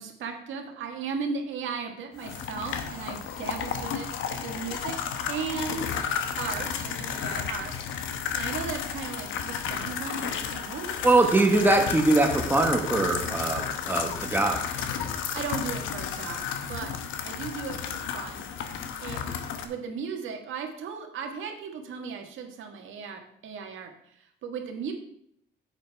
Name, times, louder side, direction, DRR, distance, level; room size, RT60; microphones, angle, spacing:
voice 1, 0.0-4.1 4.4-5.0 5.3-5.9 6.4-7.7 8.0-11.0 15.3-16.9 17.2-18.4 19.0-19.3 19.6-24.9, right 5 dB, 80° right, 3 dB, 1.6 m, -36 dB
sound 1, 2.2-19.6, left 7 dB, 90° left, 0.9 m, -32 dB
voice 2, 11.0-14.6, right 2 dB, 10° right, 2 dB, 1.3 m, -22 dB
10.0 x 8.0 x 3.4 m, 0.71 s
cardioid pair, 90°, 20 cm